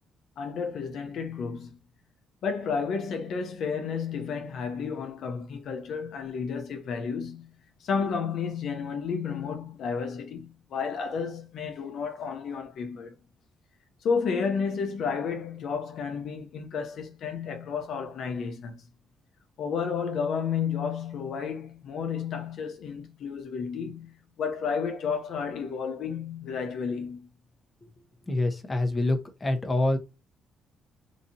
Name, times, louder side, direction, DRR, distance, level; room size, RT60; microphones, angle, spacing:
voice 1, 0.4-1.8 2.4-7.5 7.8-13.1 14.0-18.8 19.6-27.3, left 6 dB, 70° left, 0.8 m, -32 dB
voice 2, 28.3-30.0, left 2 dB, 20° left, 0.9 m, -26 dB
4.0 x 2.7 x 2.7 m
cardioid pair, 90°, 0 cm